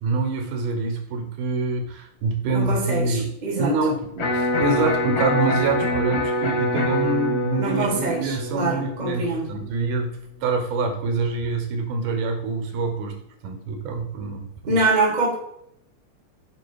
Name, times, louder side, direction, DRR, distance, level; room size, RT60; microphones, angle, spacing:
voice 1, 0.0-13.2 13.4-14.8, right 3 dB, 85° right, 5 dB, 2.5 m, -26 dB
voice 2, 2.5-3.7 7.6-9.5 14.7-15.3, right 3 dB, 30° right, -2 dB, 0.8 m, -24 dB
Electric guitar, 4.2-10.2, left 1 dB, 55° left, 1.0 m, -25 dB
9.1 x 3.1 x 4.7 m, 0.73 s
omnidirectional pair, 3.6 m